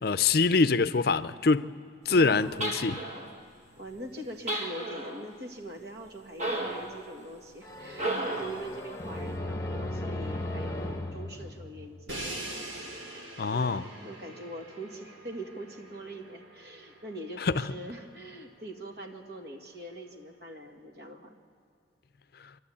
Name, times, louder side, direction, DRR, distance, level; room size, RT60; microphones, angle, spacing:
voice 1, 0.0-1.7 2.1-3.0 13.4-13.9 17.4-17.7, left 4 dB, 55° left, 0.5 m, -24 dB
voice 2, 2.1-2.8 3.8-12.7 13.5-21.4, right 1 dB, 55° right, 1.9 m, -43 dB
sound 1, 2.6-3.3 4.5-5.2 6.4-7.0 7.9-8.7, right 1 dB, 35° right, 1.9 m, -33 dB
sound 2, 7.6-12.4, left 1 dB, 15° left, 1.2 m, -37 dB
Crash cymbal, 12.1-18.1, right 1 dB, 90° right, 3.2 m, -43 dB
27.0 x 12.0 x 8.6 m
head